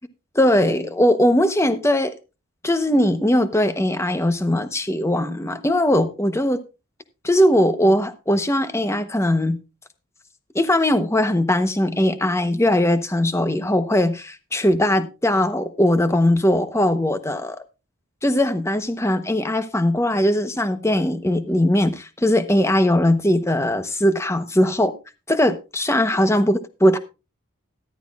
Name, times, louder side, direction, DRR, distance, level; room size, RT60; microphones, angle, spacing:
voice 1, 0.3-2.1 2.6-6.6 7.2-9.6 10.5-17.6 18.2-24.9 25.3-27.0, left 1 dB, 15° left, 1.0 m, -20 dB
13.5 x 12.5 x 2.4 m
head